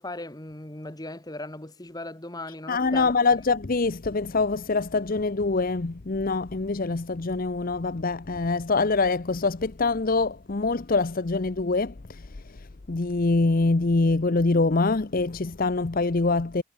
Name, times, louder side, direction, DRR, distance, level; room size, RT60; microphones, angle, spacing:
voice 1, 0.0-3.1, left 2 dB, 15° left, 1.4 m, -38 dB
voice 2, 2.7-12.2 12.9-16.6, left 3 dB, 40° left, 0.7 m, -24 dB
head